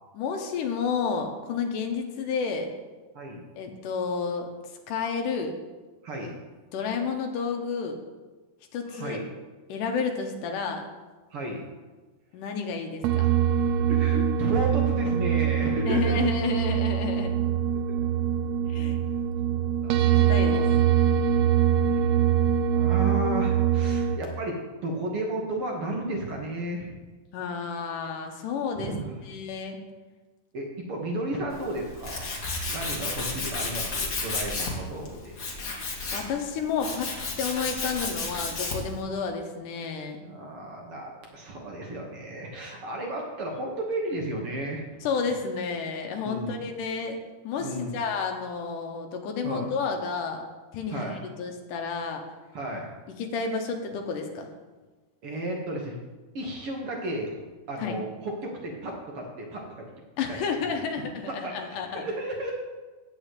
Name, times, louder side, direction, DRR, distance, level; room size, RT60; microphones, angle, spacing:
voice 1, 0.1-2.7 3.6-4.5 4.9-5.5 6.7-8.0 8.7-9.2 9.7-10.8 12.3-13.3 15.9-17.3 18.7-19.0 20.1-20.7 27.3-29.0 29.2-29.8 36.1-37.1 37.4-40.2 45.0-47.2 47.4-50.4 50.7-52.2 53.2-54.5 57.8-58.0 60.2-62.1, left 5 dB, 90° left, 3 dB, 2.6 m, -31 dB
voice 2, 6.0-6.3 8.9-9.3 11.3-11.6 13.9-16.2 18.0-18.1 19.5-20.7 21.9-22.1 22.7-27.0 28.8-29.1 30.5-32.3 32.6-35.4 40.2-44.8 46.2-46.6 47.6-48.0 49.4-49.7 50.9-51.2 52.5-52.9 55.2-56.0 56.3-57.3 57.7-59.9 60.3-60.4 61.3-62.5, right 1 dB, 55° right, 0 dB, 1.8 m, -33 dB
sound 1, 13.0-24.2, right 9 dB, 85° right, 1.5 m, -23 dB
Tools, 31.5-39.0, left 3 dB, 40° left, 1.7 m, -32 dB
9.0 x 6.1 x 8.1 m, 1.3 s
omnidirectional pair, 3.6 m